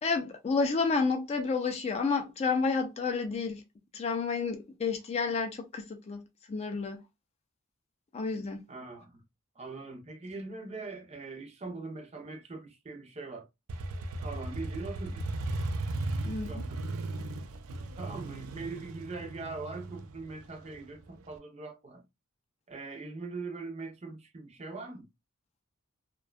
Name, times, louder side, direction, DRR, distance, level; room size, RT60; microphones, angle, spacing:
voice 1, 0.0-3.6 3.9-7.0 8.1-8.6 16.3-16.6, left 4 dB, 30° left, 0.3 m, -30 dB
voice 2, 8.7-9.2 9.6-13.5 14.2-15.2 16.2-16.8 17.2-17.3 18.0-22.0 22.7-25.1, right 3 dB, 30° right, 0.5 m, -42 dB
Motorcycle, 13.7-21.3, right 2 dB, 85° right, 0.4 m, -36 dB
2.5 x 2.2 x 2.2 m
head